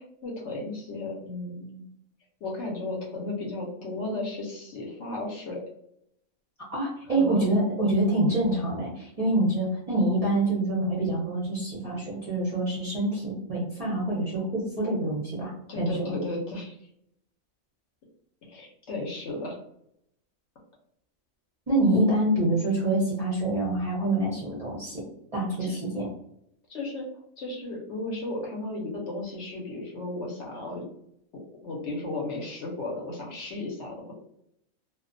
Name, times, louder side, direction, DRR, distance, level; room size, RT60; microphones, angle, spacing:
voice 1, 0.0-1.8 2.4-5.6 7.1-7.5 15.7-16.8 18.4-19.6 25.6-25.8 26.7-27.1 27.4-30.8 31.3-34.1, left 2 dB, 65° left, -2 dB, 0.8 m, -34 dB
voice 2, 6.7-16.1 21.7-25.0 25.3-26.1, right 1 dB, 40° right, -7 dB, 0.5 m, -26 dB
2.4 x 2.1 x 2.5 m, 0.74 s
omnidirectional pair, 1.5 m